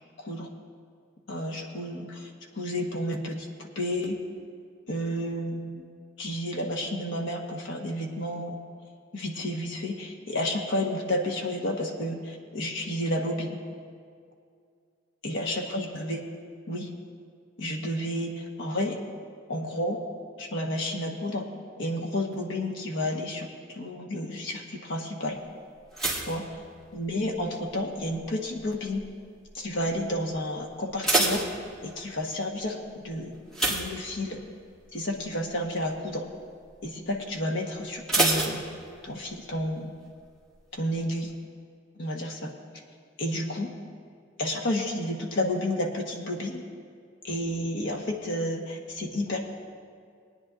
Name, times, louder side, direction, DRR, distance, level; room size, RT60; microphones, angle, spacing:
voice 1, 0.2-0.5 1.3-4.2 4.9-5.9 6.2-8.6 9.1-13.6 15.2-16.2 16.7-16.9 17.6-19.0 19.5-20.0 20.4-21.5 21.8-25.4 26.1-26.4 26.9-29.0 29.5-31.4 31.8-33.3 33.7-34.4 34.9-36.2 36.8-38.6 39.0-39.9 40.7-41.3 42.0-42.5 43.2-43.7 44.4-46.6 47.2-49.4, left 1 dB, 65° left, 1 dB, 1.3 m, -31 dB
sound 1, 25.9-27.4 27.7-28.2 28.8-29.2 29.5-29.6 30.0-30.1 30.7-32.2 33.5-34.7 35.0-35.3 35.7-35.8 38.1-39.3 39.6-39.7, right 2 dB, 5° left, 1.6 m, -28 dB
22.5 x 9.6 x 2.5 m, 2.3 s
head